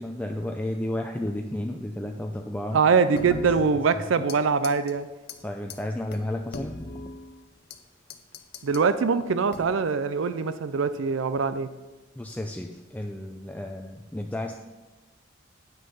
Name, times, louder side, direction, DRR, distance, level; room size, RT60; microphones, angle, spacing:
voice 1, 0.0-2.8 3.3-3.4 3.9-4.3 5.4-6.8 12.2-14.5, left 1 dB, 10° left, 3 dB, 0.4 m, -32 dB
voice 2, 2.7-5.1 8.6-11.7, right 5 dB, 75° right, 12 dB, 0.4 m, -23 dB
sound 1, 3.1-4.4 4.6-4.9 5.3-5.4 5.7-5.8 6.1-7.8 8.1-8.9 9.5-9.9, left 3 dB, 55° left, 0.7 m, -40 dB
9.1 x 6.4 x 5.5 m, 1.2 s
head